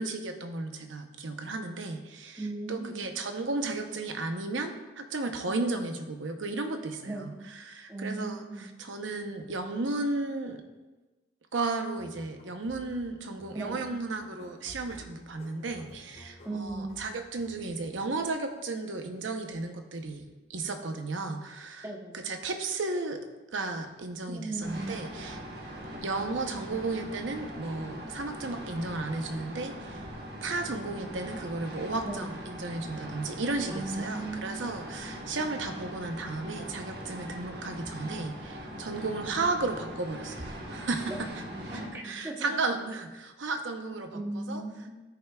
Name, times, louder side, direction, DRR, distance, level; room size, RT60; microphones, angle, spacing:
voice 1, 0.0-2.4 2.7-7.3 7.6-10.6 11.5-21.8 22.2-25.4 26.0-30.1 30.4-41.1 41.7-44.6, right 3 dB, 85° right, 6 dB, 0.8 m, -34 dB
voice 2, 2.4-3.0 7.1-7.5 7.9-8.7 13.5-13.8 16.4-17.0 21.8-22.2 24.3-24.9 32.0-32.3 33.7-34.7 41.1-42.5 44.1-44.9, right 2 dB, 15° right, -1 dB, 0.9 m, -37 dB
sound 1, 12.0-18.3, equal, 45° left, 2.7 m, -53 dB
sound 2, 24.6-41.9, equal, 55° right, 1.2 m, -41 dB
14.0 x 5.6 x 2.3 m, 1.1 s
head